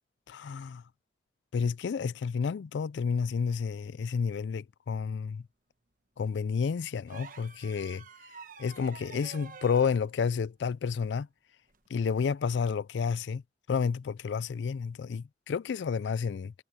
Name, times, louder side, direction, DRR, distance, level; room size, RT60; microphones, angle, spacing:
voice 1, 0.3-0.8 1.5-5.4 6.2-8.0 8.6-11.3 11.9-13.4 13.7-16.5, left 6 dB, 85° left, 0.4 m, -30 dB
sound 1, 7.1-10.0 11.7-11.9, right 5 dB, 50° right, 1.2 m, -48 dB
head